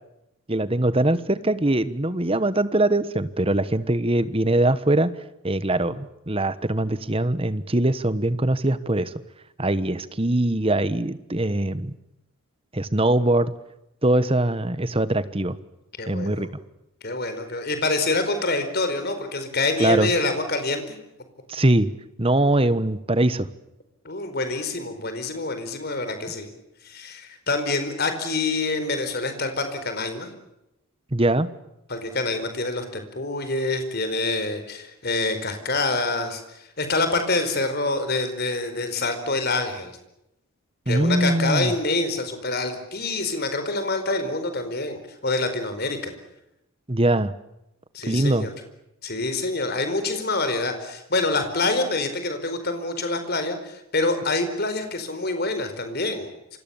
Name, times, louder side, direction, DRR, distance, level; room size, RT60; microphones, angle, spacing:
voice 1, 0.5-5.1 5.4-9.1 9.6-11.9 12.7-13.5 14.0-15.6 16.1-16.5 19.8-20.1 21.5-21.9 22.2-23.5 31.1-31.5 40.9-41.7 46.9-47.3 48.1-48.5, right 1 dB, 25° right, 14 dB, 1.2 m, -22 dB
voice 2, 16.0-16.5 17.0-21.0 24.0-26.5 26.8-30.3 31.9-40.0 40.9-46.1 47.9-48.5 49.0-56.6, left 2 dB, 45° left, 8 dB, 4.7 m, -26 dB
28.0 x 25.0 x 7.2 m, 0.87 s
head